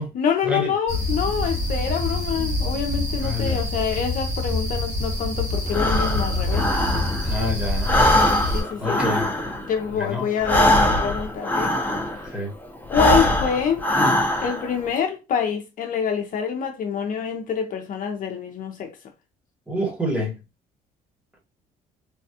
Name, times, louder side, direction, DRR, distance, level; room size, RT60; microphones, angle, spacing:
voice 1, 0.0-6.7 8.1-9.1 9.7-11.8 12.9-13.8 14.4-18.9, left 7 dB, 55° left, 0.6 m, -26 dB
sound 1, 0.9-8.6, left 2 dB, 45° right, 1.9 m, -26 dB
voice 2, 3.2-3.6 7.2-7.9 8.4-9.3 10.1-10.3 12.3-12.5 19.7-20.4, left 1 dB, 5° right, 1.2 m, -27 dB
Breathing, 5.7-7.4 7.7-12.3 12.8-14.7, left 1 dB, 10° left, 0.8 m, -22 dB
3.4 x 2.2 x 2.8 m
cardioid pair, 110°, 17 cm